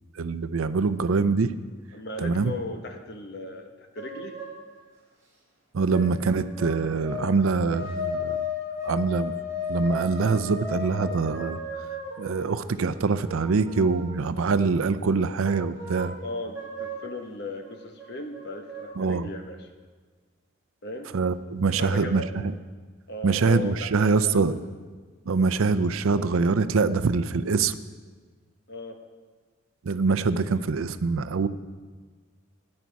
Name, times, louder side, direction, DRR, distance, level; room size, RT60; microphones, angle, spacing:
voice 1, 0.2-1.5 2.2-2.5 5.7-8.5 8.8-9.3 9.7-11.6 12.2-16.2 19.0-19.3 21.1-22.5 23.2-24.6 25.3-27.8 29.8-31.5, right 4 dB, 80° right, 13 dB, 0.5 m, -24 dB
voice 2, 1.9-4.4 16.2-19.7 20.8-21.1 21.8-22.4 23.1-24.4 28.7-29.0, left 2 dB, 50° left, 4 dB, 1.1 m, -37 dB
sound 1, 4.0-4.6 5.9-7.5 7.7-14.1 14.7-16.2 16.5-17.1 17.6-17.7 18.0-18.8, left 3 dB, 15° right, 4.2 m, -35 dB
13.5 x 9.7 x 4.7 m, 1.5 s
head